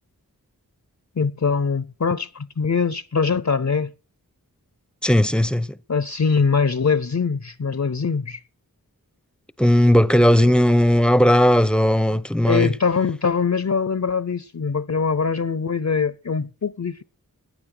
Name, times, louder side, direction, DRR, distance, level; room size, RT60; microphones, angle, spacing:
voice 1, 1.2-3.9 5.9-8.4 10.4-10.5 12.5-17.0, left 5 dB, 50° left, 0.7 m, -22 dB
voice 2, 5.0-5.8 9.6-12.7, equal, 5° left, 0.7 m, -17 dB
15.0 x 9.5 x 6.6 m
wide cardioid pair, 40°, 35 cm